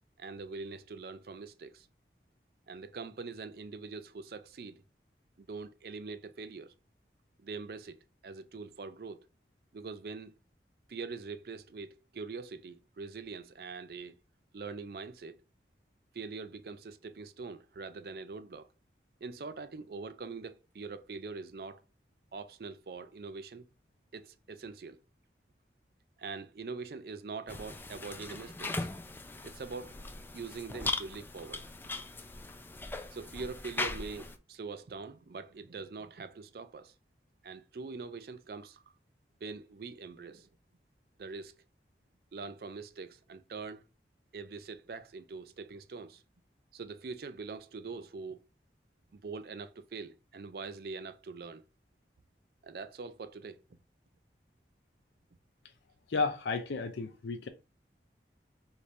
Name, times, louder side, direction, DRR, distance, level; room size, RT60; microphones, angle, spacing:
voice 1, 0.2-1.9 2.7-4.8 5.4-6.7 7.4-9.3 9.7-10.3 10.9-14.1 14.5-15.4 16.1-18.7 19.2-21.8 22.3-23.7 24.1-25.0 26.2-28.9 29.4-31.7 33.1-36.9 37.4-38.8 39.4-40.5 41.2-41.6 42.3-43.8 44.3-46.2 46.7-48.4 49.1-51.6 52.6-53.6, right 4 dB, 55° right, 0.4 m, -43 dB
sound 1, 27.5-34.4, left 2 dB, 10° left, 0.3 m, -39 dB
voice 2, 56.1-57.5, left 4 dB, 80° left, 0.5 m, -32 dB
5.0 x 2.7 x 3.1 m
head